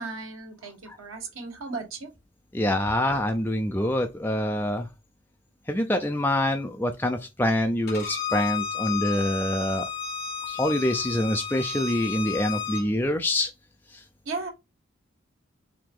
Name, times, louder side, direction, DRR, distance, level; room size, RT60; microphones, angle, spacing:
voice 1, 0.0-2.1 14.2-14.5, right 3 dB, 85° right, 1.7 m, -35 dB
voice 2, 2.5-4.9 5.7-9.9 10.5-13.5, left 1 dB, 10° left, 0.5 m, -25 dB
Bowed string instrument, 7.9-12.8, left 7 dB, 50° left, 1.9 m, -32 dB
4.9 x 2.8 x 3.7 m
head